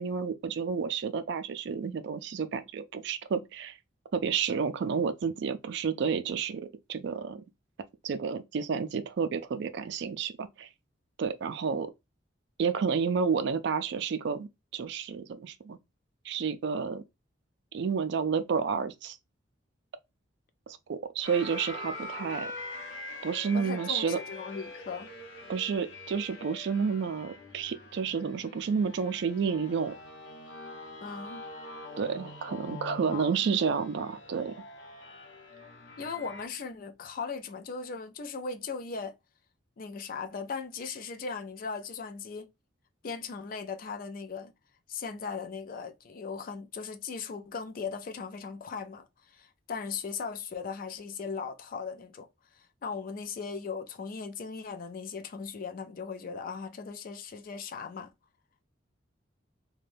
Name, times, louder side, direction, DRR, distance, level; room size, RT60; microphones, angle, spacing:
voice 1, 0.0-3.8 4.1-7.4 8.0-10.7 11.2-11.9 12.6-15.8 16.2-17.0 17.7-19.2 20.9-22.5 23.2-24.2 25.5-29.9 32.0-34.5, right 6 dB, 60° right, 0.3 m, -30 dB
sound 1, 21.2-36.5, left 2 dB, 75° left, 0.8 m, -44 dB
voice 2, 23.5-25.1 31.0-31.5 33.1-33.3 36.0-39.1 39.8-42.5 43.0-44.5 44.9-52.3 52.5-58.1, left 5 dB, 45° left, 0.4 m, -38 dB
2.5 x 2.2 x 3.2 m
head